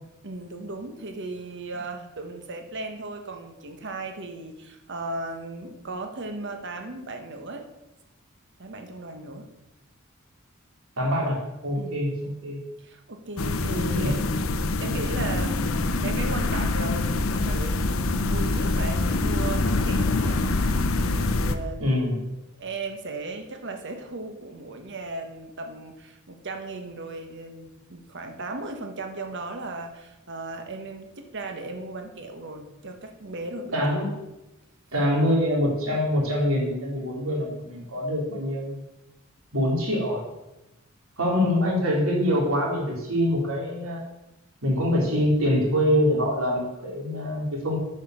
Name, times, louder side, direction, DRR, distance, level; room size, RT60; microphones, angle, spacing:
voice 1, 0.2-7.6 8.6-9.5 11.7-12.1 12.8-14.2 14.8-22.2 22.6-34.0, right 2 dB, 60° right, 5 dB, 1.3 m, -36 dB
voice 2, 11.0-12.6 13.9-14.2 21.8-22.2 33.7-34.1 34.9-38.8 39.5-40.2 41.2-44.0 44.6-47.8, equal, 80° right, -2 dB, 3.3 m, -24 dB
sound 1, 13.4-21.6, left 2 dB, 75° left, 0.7 m, -25 dB
9.3 x 5.5 x 6.4 m, 0.96 s
head